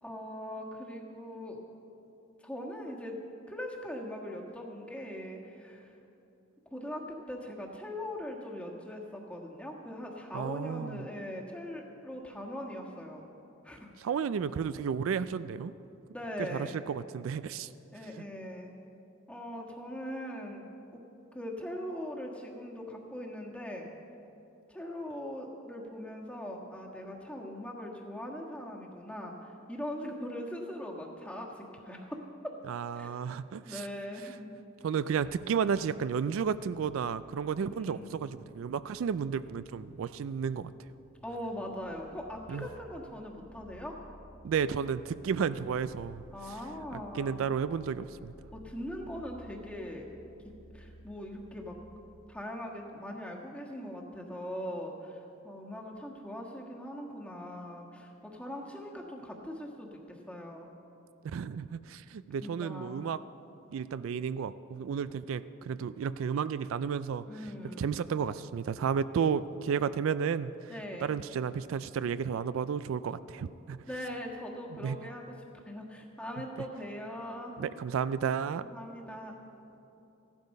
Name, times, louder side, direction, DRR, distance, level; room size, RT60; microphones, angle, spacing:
voice 1, 0.0-1.6 2.4-3.2 3.5-5.9 6.7-13.3 13.6-13.9 14.6-14.8 16.1-16.9 17.9-18.7 19.3-20.6 20.9-21.0 21.3-23.9 24.7-32.2 32.9-33.2 33.6-34.5 37.7-38.1 41.2-44.0 46.3-47.5 48.5-50.1 50.7-51.8 52.3-60.7 62.4-63.0 67.3-67.9 70.7-71.1 73.9-75.2 75.6-77.6 78.7-79.4, left 1 dB, 5° left, -1 dB, 1.4 m, -41 dB
voice 2, 10.3-11.0 14.0-15.7 16.4-17.7 32.7-33.9 34.8-40.7 42.5-42.7 44.4-46.2 47.1-48.3 61.2-63.2 63.7-67.3 67.8-70.7 71.0-73.8 74.8-75.0 77.6-78.6, right 7 dB, 75° right, 15 dB, 0.3 m, -32 dB
sound 1, 35.2-52.4, equal, 40° left, 2.0 m, -56 dB
15.5 x 12.0 x 5.3 m, 2.9 s
head